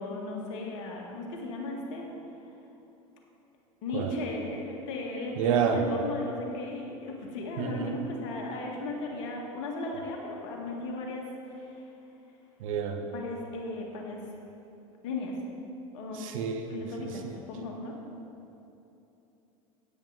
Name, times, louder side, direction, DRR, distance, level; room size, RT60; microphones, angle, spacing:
voice 1, 0.0-2.1 3.8-10.2 10.4-11.9 13.0-14.2 15.0-15.3 15.9-16.3 16.7-17.9, left 2 dB, 70° left, 0 dB, 1.9 m, -36 dB
voice 2, 5.4-5.8 7.6-8.0 12.6-13.0 16.2-16.7 17.0-17.1, right 7 dB, 75° right, 5 dB, 1.0 m, -29 dB
9.8 x 9.2 x 4.1 m, 2.9 s
hypercardioid pair, 85°, 17 cm